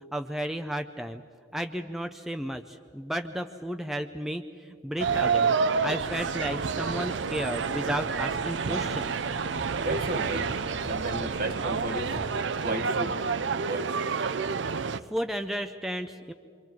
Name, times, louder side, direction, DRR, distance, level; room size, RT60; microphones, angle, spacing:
voice 1, 0.1-1.2 1.5-5.6 5.8-9.1 15.1-16.3, equal, ahead, 6 dB, 0.5 m, -33 dB
sound 1, 5.0-15.0, right 5 dB, 70° right, 0.6 m, -29 dB
sound 2, 6.0-12.4, left 1 dB, 30° left, 1.0 m, -44 dB
voice 2, 9.8-10.5 10.9-12.2 12.6-13.9, right 2 dB, 50° right, 7 dB, 1.6 m, -34 dB
27.0 x 25.0 x 4.6 m, 2.3 s
head